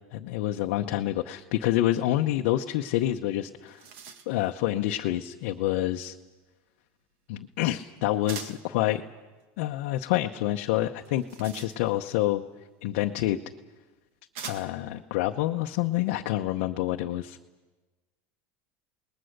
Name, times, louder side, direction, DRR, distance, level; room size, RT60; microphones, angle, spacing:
voice 1, 0.1-3.8 4.3-6.1 7.3-9.0 9.6-12.4 12.8-13.4 14.4-17.4, left 14 dB, 70° left, 3 dB, 0.8 m, -27 dB
sound 1, 3.1-3.2 3.5-4.5 8.3-8.7 11.0-12.2 13.3-13.4 14.3-14.9, right 7 dB, 70° right, 1.9 m, -43 dB
27.5 x 20.0 x 6.6 m, 1.2 s
cardioid pair, 165°, 7 cm